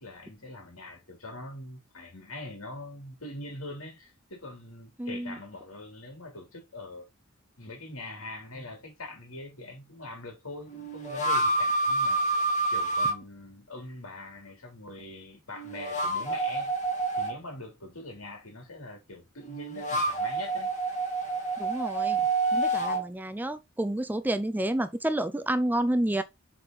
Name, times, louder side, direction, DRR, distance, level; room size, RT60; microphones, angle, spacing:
voice 1, 0.0-7.0 7.6-12.5 12.7-16.8 17.2-20.7, left 2 dB, 75° left, 3.1 m, -43 dB
voice 2, 5.0-5.4 21.6-22.2 22.5-26.2, right 1 dB, 10° right, 0.4 m, -29 dB
sound 1, 8.6-8.7 10.7-13.1 15.5-17.3 19.4-23.0, right 2 dB, 35° left, 2.2 m, -28 dB
7.7 x 4.1 x 4.0 m
head